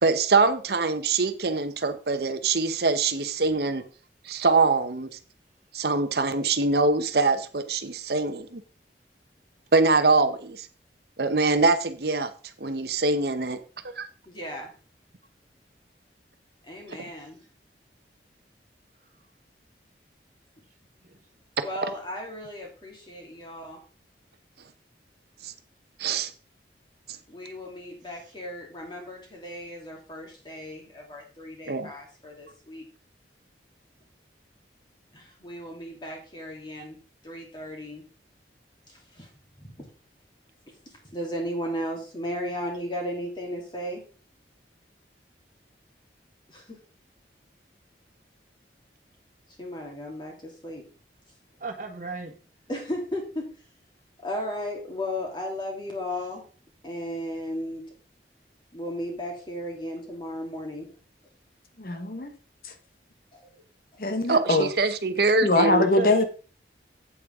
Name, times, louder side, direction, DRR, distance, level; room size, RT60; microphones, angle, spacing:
voice 1, 0.0-3.8 4.2-5.1 5.7-8.6 9.7-10.7 11.2-12.3 12.6-13.6 13.8-14.1 25.4-25.5 26.0-26.3 31.7-31.9 64.3-64.4 64.8-65.8, right 3 dB, 65° right, 0.8 m, -23 dB
voice 2, 14.3-14.7 16.6-17.4 21.6-23.8 27.3-32.8 35.1-37.0 37.2-38.0 38.9-39.3 39.6-39.9 40.9-44.0 46.5-46.8 49.6-50.8 52.7-53.5 54.2-56.4 56.8-57.8 58.7-60.9 63.3-63.4, equal, 25° left, 3.0 m, -35 dB
voice 3, 51.6-52.4 65.5-65.7 66.0-66.3, right 3 dB, 45° right, 1.4 m, -34 dB
voice 4, 61.8-62.4 62.6-62.8 64.0-64.7 65.4-66.2, left 2 dB, 55° left, 1.1 m, -23 dB
8.7 x 8.3 x 3.6 m
head